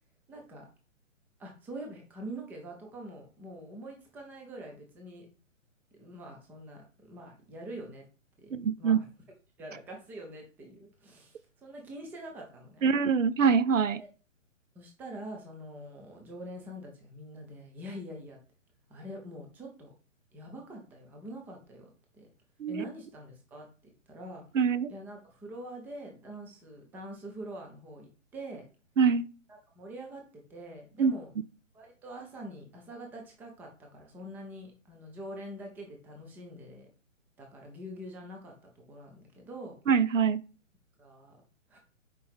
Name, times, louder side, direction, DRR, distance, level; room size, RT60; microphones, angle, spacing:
voice 1, 0.3-0.7 1.4-5.3 5.9-8.1 8.4-9.1 9.6-12.8 14.0-14.1 14.7-18.4 18.9-19.9 20.3-22.3 22.7-23.7 24.1-24.4 24.9-28.1 28.3-28.6 29.5-30.2 30.5-31.3 31.7-36.9 37.4-39.8 41.0-41.4 41.7-41.8, right 1 dB, 5° right, 0.6 m, -45 dB
voice 2, 8.5-9.0 12.8-14.0 22.6-22.8 24.5-24.9 29.0-29.2 31.0-31.1 39.9-40.4, right 6 dB, 75° right, 0.6 m, -24 dB
6.0 x 5.1 x 3.6 m
figure-of-eight pair, 130°, 39 cm